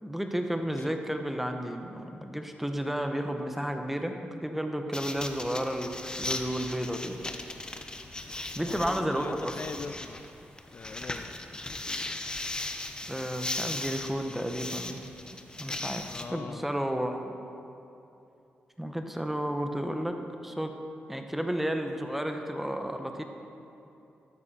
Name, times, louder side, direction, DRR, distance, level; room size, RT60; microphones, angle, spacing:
voice 1, 0.0-7.2 8.5-9.5 13.1-15.0 15.6-16.0 16.3-17.3 18.8-20.2 20.4-20.7 21.1-23.2, equal, 5° right, 5 dB, 1.0 m, -32 dB
sound 1, 4.9-16.2, left 2 dB, 20° left, 0.8 m, -38 dB
voice 2, 8.7-10.3 10.7-11.3 15.2-15.4 16.1-16.7, left 5 dB, 50° left, 10 dB, 0.3 m, -41 dB
13.0 x 9.6 x 4.3 m, 2.8 s
cardioid pair, 80°, 4 cm